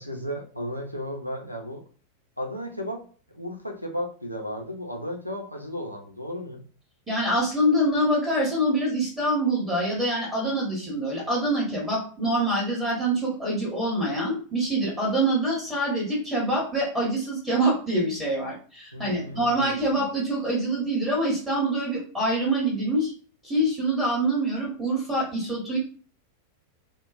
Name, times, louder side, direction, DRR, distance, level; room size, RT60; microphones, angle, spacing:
voice 1, 0.0-1.8 2.4-3.0 3.3-6.6 18.9-19.9, equal, 90° left, 1 dB, 0.5 m, -34 dB
voice 2, 7.1-23.1 23.4-25.8, right 1 dB, 15° right, -7 dB, 1.3 m, -25 dB
2.9 x 2.2 x 2.4 m, 0.40 s
figure-of-eight pair, 90°, 0 cm